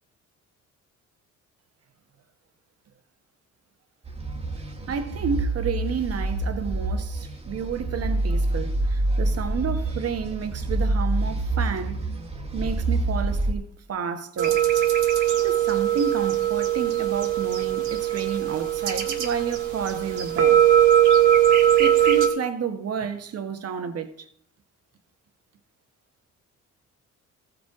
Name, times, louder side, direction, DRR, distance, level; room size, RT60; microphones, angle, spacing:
sound 1, 4.1-13.5, right 2 dB, 20° right, 1.3 m, -27 dB
voice 1, 4.9-12.1 12.5-14.6 15.4-20.6 21.8-24.3, right 6 dB, 55° right, 1.2 m, -31 dB
sound 2, 14.4-22.3, right 11 dB, 85° right, 1.5 m, -20 dB
14.5 x 5.1 x 4.8 m
cardioid pair, 90°, 30 cm